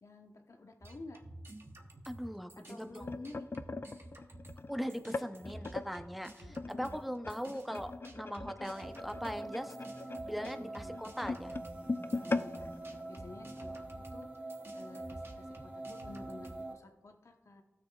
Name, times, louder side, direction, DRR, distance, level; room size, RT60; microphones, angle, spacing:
voice 1, 0.0-1.2 2.7-3.5 6.4-7.0 10.5-11.0 12.2-14.3 14.7-17.6, left 2 dB, 75° left, 4 dB, 1.0 m, -51 dB
sound 1, 0.8-4.6 4.9-16.6, right 1 dB, 50° right, 1.0 m, -52 dB
voice 2, 2.1-3.0 4.7-9.7 10.2-11.6, equal, ahead, 8 dB, 0.6 m, -40 dB
sound 2, 2.6-5.9 6.5-13.8 14.2-14.4 14.7-15.0 15.7-15.8, left 3 dB, 45° left, 0.4 m, -41 dB
sound 3, 8.7-16.7, right 2 dB, 30° right, 1.7 m, -45 dB
17.0 x 6.4 x 2.4 m, 1.1 s
wide cardioid pair, 60°, 5 cm